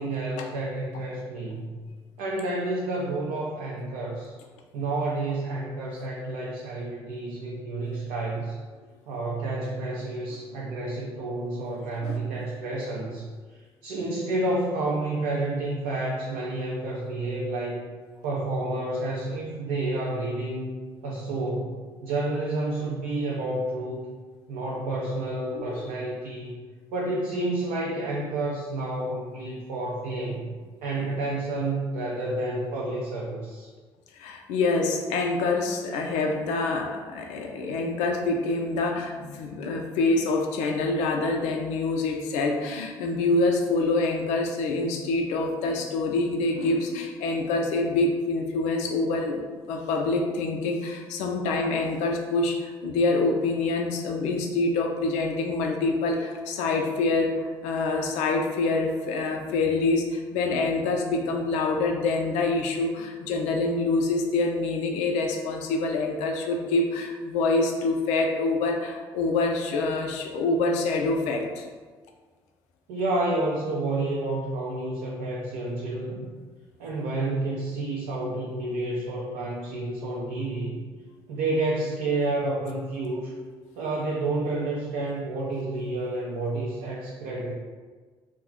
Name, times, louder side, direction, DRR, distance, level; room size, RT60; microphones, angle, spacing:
voice 1, 0.0-1.8 2.2-4.3 4.7-8.6 9.1-17.9 18.2-20.8 21.0-24.1 24.5-26.5 26.9-30.5 30.8-33.7 72.9-76.3 76.8-80.8 81.3-83.3 83.8-87.6, right 2 dB, 70° right, -4 dB, 0.4 m, -30 dB
voice 2, 25.5-25.9 34.2-49.4 49.7-71.6, left 3 dB, 65° left, 3 dB, 0.4 m, -26 dB
2.3 x 2.1 x 3.6 m, 1.4 s
hypercardioid pair, 50°, 13 cm